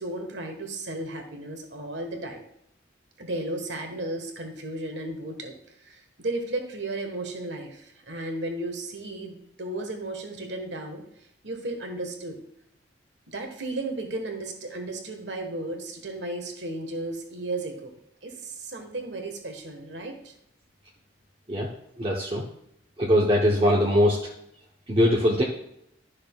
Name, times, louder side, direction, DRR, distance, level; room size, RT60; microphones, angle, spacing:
voice 1, 0.0-2.4 3.2-5.5 5.8-11.0 11.4-12.4 13.3-17.9 18.2-20.3, right 2 dB, 65° right, 4 dB, 1.4 m, -34 dB
voice 2, 22.0-22.4 23.0-24.2 24.9-25.4, equal, 30° right, -3 dB, 0.9 m, -21 dB
12.0 x 6.4 x 2.4 m, 0.77 s
head